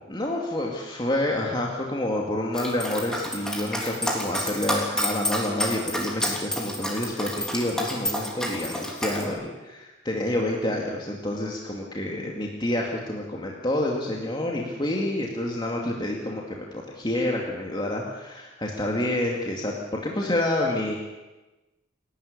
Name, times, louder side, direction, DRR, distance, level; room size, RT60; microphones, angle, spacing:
voice 1, 0.1-20.9, left 1 dB, 25° left, -1 dB, 2.3 m, -28 dB
Dog, 2.5-9.2, equal, 5° left, 3.3 m, -29 dB
29.0 x 12.0 x 8.5 m, 1.1 s
head